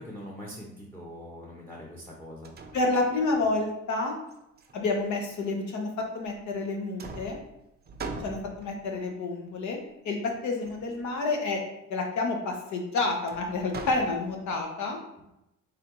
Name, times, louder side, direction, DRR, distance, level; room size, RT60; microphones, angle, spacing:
voice 1, 0.0-2.5, equal, 10° left, -3 dB, 0.8 m, -42 dB
sound 1, 2.1-2.2 2.4-3.5 4.3-5.3 6.3-6.7 7.0-8.9 10.6-11.1 13.3-14.6, right 3 dB, 35° right, 0.5 m, -42 dB
voice 2, 2.7-4.1 4.7-7.4 8.2-9.8 10.0-11.6 11.9-15.0, left 3 dB, 70° left, 2 dB, 1.0 m, -29 dB
3.8 x 3.3 x 3.0 m, 0.88 s
cardioid pair, 90°, 30 cm